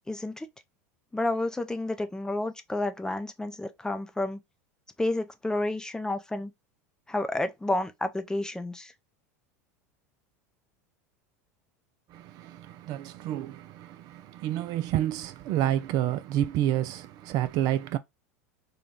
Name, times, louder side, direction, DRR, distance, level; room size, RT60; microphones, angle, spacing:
voice 1, 0.1-0.5 1.1-4.4 5.0-6.5 7.1-8.9, left 2 dB, 10° left, 0.5 m, -30 dB
voice 2, 12.1-18.0, right 12 dB, 50° right, 0.4 m, -29 dB
3.8 x 2.3 x 3.5 m
hypercardioid pair, 90°, 8 cm